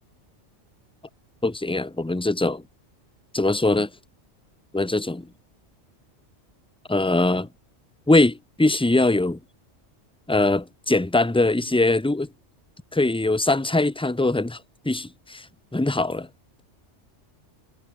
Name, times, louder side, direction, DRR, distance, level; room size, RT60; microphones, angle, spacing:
voice 1, 1.4-2.6 3.3-3.9 4.7-5.3 6.9-7.5 8.1-9.4 10.3-12.3 12.9-15.5 15.7-16.3, left 2 dB, 5° left, 0.6 m, -22 dB
omnidirectional pair, 1.2 m